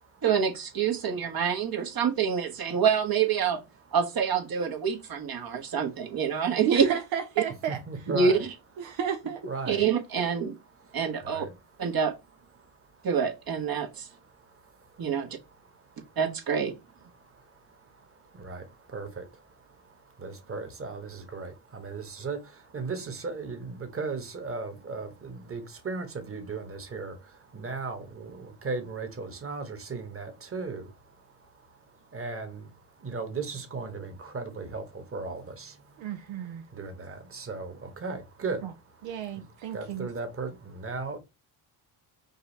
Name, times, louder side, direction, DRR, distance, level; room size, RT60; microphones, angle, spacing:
voice 1, 0.2-3.6 3.9-6.9 8.1-8.5 9.7-10.6 10.9-11.4 11.8-12.1 13.0-14.1 15.0-15.4 16.2-16.7, right 6 dB, 45° right, 1.2 m, -26 dB
voice 2, 5.4-5.7 7.7-8.4 8.9-9.0 9.5-9.8 10.8-11.6 12.6-13.1 14.1-15.2 15.6-16.2 17.1-41.2, right 4 dB, 25° right, 1.4 m, -38 dB
voice 3, 6.7-7.8 8.8-9.4 36.0-36.6 38.6-38.7 39.0-40.1, right 8 dB, 65° right, 0.7 m, -32 dB
5.4 x 2.3 x 4.1 m
cardioid pair, 80°, 49 cm